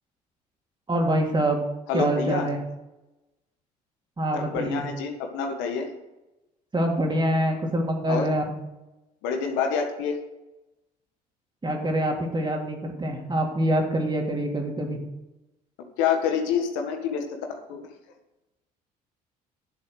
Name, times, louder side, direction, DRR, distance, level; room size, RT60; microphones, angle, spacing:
voice 1, 0.9-1.6 1.9-2.6 4.2-4.8 6.7-8.6 11.6-15.0, right 1 dB, 25° right, 1 dB, 3.2 m, -25 dB
voice 2, 1.9-2.5 4.3-5.9 8.1-8.3 9.2-10.2 16.0-17.2 17.5-17.8, left 6 dB, 70° left, 4 dB, 1.6 m, -27 dB
11.0 x 7.4 x 6.5 m, 0.98 s
hypercardioid pair, 55°, 20 cm